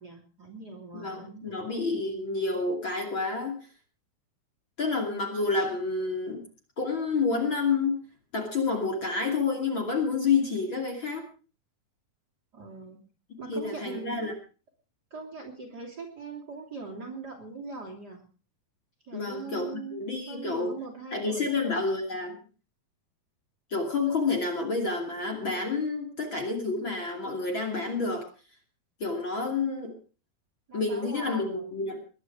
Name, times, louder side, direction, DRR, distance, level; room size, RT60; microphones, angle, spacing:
voice 1, 0.0-2.6 12.5-13.0 13.4-14.2 15.1-18.3 19.0-21.8 30.7-31.8, right 4 dB, 30° right, 2 dB, 3.2 m, -42 dB
voice 2, 0.9-3.6 4.8-6.4 6.8-8.0 8.3-11.2 13.5-14.3 19.1-20.7 21.1-22.4 23.7-28.3 29.0-29.9 30.7-32.0, left 4 dB, 35° left, 2 dB, 3.0 m, -29 dB
21.5 x 11.0 x 4.8 m, 0.37 s
omnidirectional pair, 4.1 m